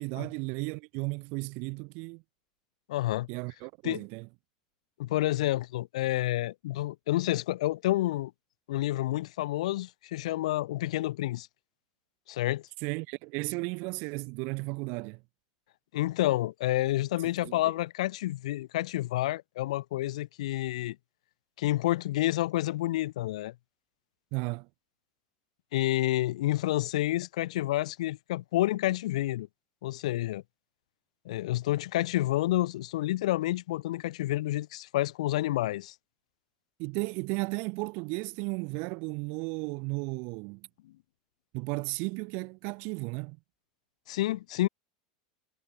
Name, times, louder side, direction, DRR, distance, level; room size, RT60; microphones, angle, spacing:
voice 1, 0.0-2.2 3.3-4.3 12.8-15.2 17.4-17.7 24.3-24.7 36.8-40.7 41.5-43.4, right 31 dB, 60° right, 0.9 m, -34 dB
voice 2, 2.9-3.3 3.8-4.0 5.0-8.3 8.7-11.5 12.3-12.6 15.9-21.0 21.6-23.5 25.7-29.5 29.8-30.4 31.3-35.9 44.1-44.7, left 15 dB, 80° left, 0.4 m, -29 dB
hypercardioid pair, 100°, 4 cm